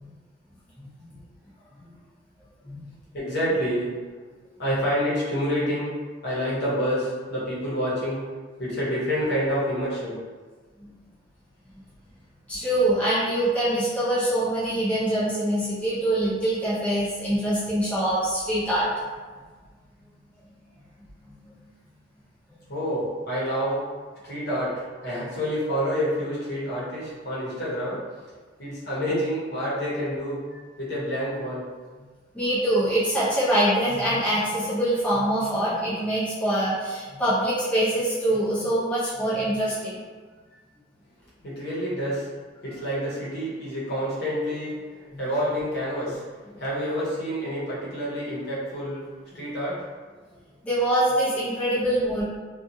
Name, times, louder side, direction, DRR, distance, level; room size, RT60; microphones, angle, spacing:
voice 1, 3.1-3.9 4.6-5.9 6.2-8.2 8.6-10.2 22.7-23.8 24.2-28.0 28.6-30.4 30.8-31.6 41.4-42.3 42.6-46.2 46.5-49.1 49.3-49.9, equal, 60° left, -8 dB, 1.0 m, -28 dB
voice 2, 12.5-18.9 32.3-39.9 45.1-45.2 50.6-52.2, right 1 dB, 5° left, -11 dB, 0.7 m, -24 dB
2.5 x 2.4 x 2.7 m, 1.4 s
head